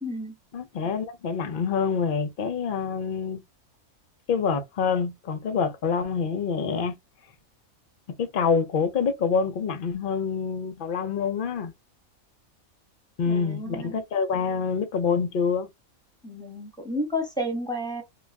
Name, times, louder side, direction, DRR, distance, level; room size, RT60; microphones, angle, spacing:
voice 1, 0.0-0.3 13.3-14.0 16.2-18.0, left 1 dB, 5° left, 0.8 m, -31 dB
voice 2, 0.5-3.4 4.3-6.9 8.2-11.7 13.2-15.7, left 6 dB, 60° left, 0.5 m, -26 dB
2.4 x 2.3 x 3.2 m
omnidirectional pair, 1.5 m